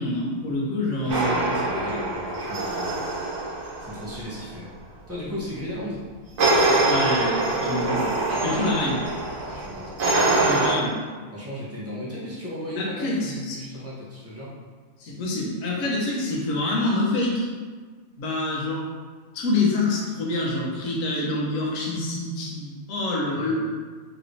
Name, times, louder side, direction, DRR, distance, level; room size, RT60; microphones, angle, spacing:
voice 1, 0.0-1.6 6.8-8.1 8.4-9.0 10.4-10.9 12.7-13.6 15.0-17.5 18.2-18.8 19.3-23.5, left 2 dB, 65° left, -4 dB, 1.1 m, -26 dB
voice 2, 1.0-3.0 3.8-4.7 5.1-6.0 8.4-8.7 9.4-10.0 11.3-14.5 23.3-23.5, left 1 dB, 15° right, -8 dB, 0.6 m, -35 dB
sound 1, 1.1-4.3 6.4-10.7, right 2 dB, 70° right, 1.1 m, -24 dB
3.2 x 3.1 x 2.6 m, 1.5 s
omnidirectional pair, 1.5 m